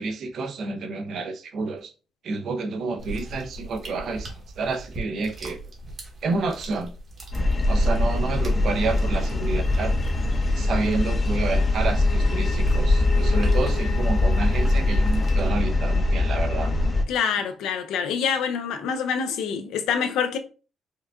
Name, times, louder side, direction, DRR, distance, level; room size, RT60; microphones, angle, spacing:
voice 1, 0.0-1.9 2.2-4.3 4.6-5.6 6.2-6.9 7.7-9.9 10.6-16.7, right 3 dB, 65° right, 0.6 m, -29 dB
sound 1, 3.0-15.5, right 1 dB, 50° right, 1.2 m, -40 dB
sound 2, 7.3-17.0, left 2 dB, 35° left, 0.6 m, -22 dB
voice 2, 17.1-20.4, left 7 dB, 90° left, 0.5 m, -26 dB
4.5 x 2.3 x 2.4 m
cardioid pair, 90°, 0 cm